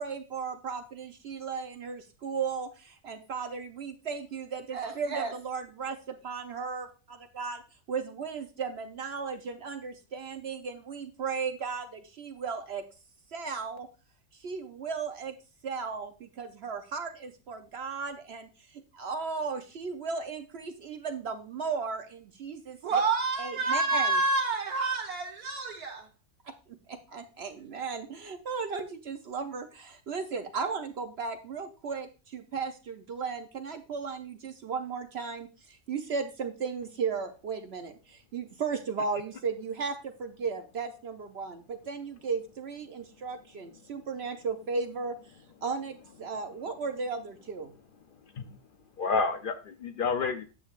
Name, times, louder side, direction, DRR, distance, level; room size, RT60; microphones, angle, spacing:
voice 1, 0.0-7.6 7.9-12.9 13.3-13.9 14.4-15.3 15.6-22.8 23.4-24.2 26.4-45.2 45.6-47.7, right 5 dB, 60° right, 7 dB, 0.7 m, -35 dB
voice 2, 4.7-5.3 22.8-26.1, right 3 dB, 90° right, -3 dB, 1.6 m, -28 dB
voice 3, 48.1-48.6 49.0-50.5, left 4 dB, 65° left, 9 dB, 0.5 m, -30 dB
8.6 x 8.3 x 2.4 m, 0.33 s
omnidirectional pair, 1.5 m